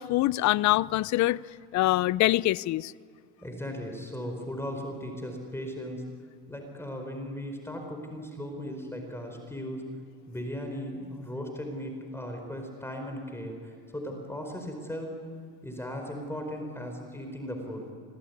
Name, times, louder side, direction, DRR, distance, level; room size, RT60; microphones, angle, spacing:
voice 1, 0.0-1.4 1.7-2.9, left 17 dB, 40° left, 0.6 m, -24 dB
voice 2, 3.4-6.0 6.5-9.8 10.3-15.1 15.6-17.9, equal, 5° left, 4.9 m, -37 dB
27.0 x 18.5 x 9.6 m
hypercardioid pair, 95°, 46 cm